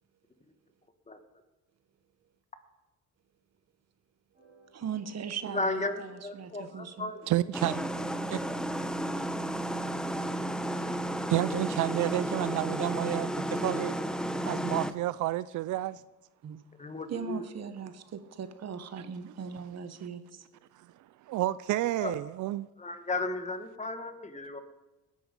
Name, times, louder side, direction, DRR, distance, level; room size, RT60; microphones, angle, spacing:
sound 1, 4.3-11.4, right 2 dB, 25° right, 6.6 m, -60 dB
voice 1, 4.7-7.1 10.3-10.4 16.4-16.6 17.1-20.4, right 7 dB, 60° right, 1.4 m, -39 dB
voice 2, 5.5-7.3 16.8-17.4 22.0-22.2 22.8-24.6, left 2 dB, 25° left, 1.6 m, -34 dB
voice 3, 7.3-7.8 8.3-8.4 10.0-14.0 14.5-16.0 19.0-19.1 20.7-20.9 21.3-22.7, right 15 dB, 75° right, 0.5 m, -31 dB
sound 2, 7.5-14.9, right 1 dB, ahead, 0.9 m, -32 dB
19.5 x 11.0 x 5.3 m
cardioid pair, 90°, 30 cm